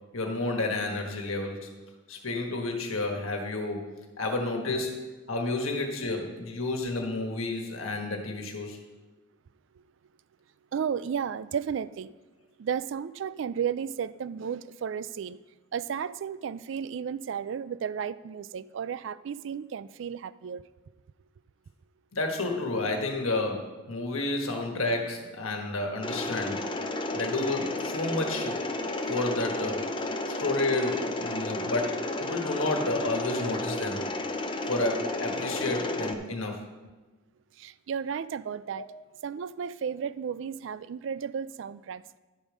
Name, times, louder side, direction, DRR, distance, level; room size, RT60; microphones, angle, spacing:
voice 1, 0.1-1.7 2.1-3.9 4.2-5.0 5.3-8.8 22.1-26.6 27.1-28.6 29.1-29.8 30.3-34.0 34.7-36.6 38.7-38.9, left 2 dB, 85° left, 1.4 m, -30 dB
voice 2, 10.7-12.1 12.6-15.4 15.7-20.6 37.6-38.9 39.2-42.2, right 7 dB, 60° right, 0.3 m, -33 dB
Mechanisms, 26.0-36.1, left 2 dB, 25° left, 0.6 m, -32 dB
11.5 x 5.2 x 6.2 m
head